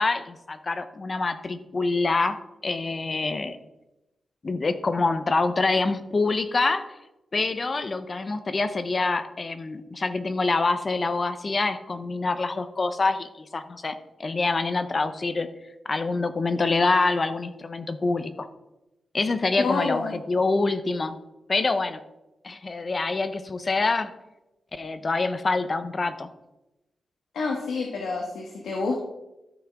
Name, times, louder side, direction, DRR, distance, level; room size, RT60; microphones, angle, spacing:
voice 1, 0.0-2.4 2.6-3.6 4.4-6.8 7.3-15.5 15.8-18.5 19.1-21.2 21.5-22.0 22.4-24.1 24.7-26.3, left 3 dB, 45° left, 11 dB, 0.8 m, -26 dB
voice 2, 19.6-20.2 27.3-29.0, left 4 dB, 90° left, 0 dB, 1.4 m, -28 dB
13.0 x 6.0 x 3.7 m, 0.95 s
cardioid pair, 65°, 0 cm